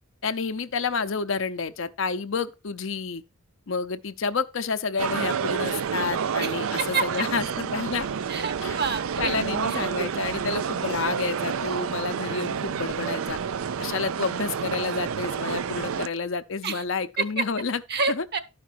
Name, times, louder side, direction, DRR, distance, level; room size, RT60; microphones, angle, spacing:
voice 1, 0.2-3.2 3.7-8.1 8.6-8.8 9.2-13.4 13.8-17.8 18.1-18.2, left 4 dB, 60° left, 0.6 m, -29 dB
sound 1, 5.0-16.1, right 7 dB, 75° right, 0.4 m, -29 dB
voice 2, 6.4-7.0 8.3-9.4 9.7-9.9 16.6-16.8 17.2-17.4 17.9-18.4, right 4 dB, 50° right, 1.0 m, -28 dB
12.0 x 5.1 x 4.5 m
head